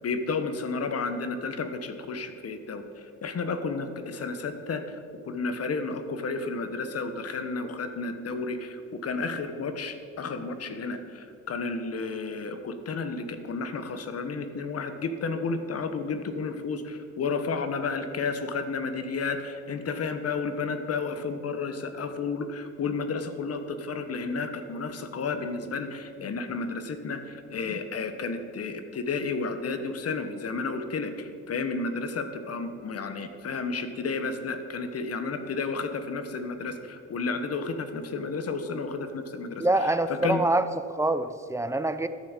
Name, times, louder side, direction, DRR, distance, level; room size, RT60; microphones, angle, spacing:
voice 1, 0.0-5.0 5.2-40.4, left 4 dB, 55° left, 8 dB, 1.3 m, -32 dB
voice 2, 39.6-42.1, right 2 dB, 10° right, 11 dB, 0.7 m, -25 dB
13.0 x 7.2 x 7.3 m, 2.4 s
cardioid pair, 90°, 30 cm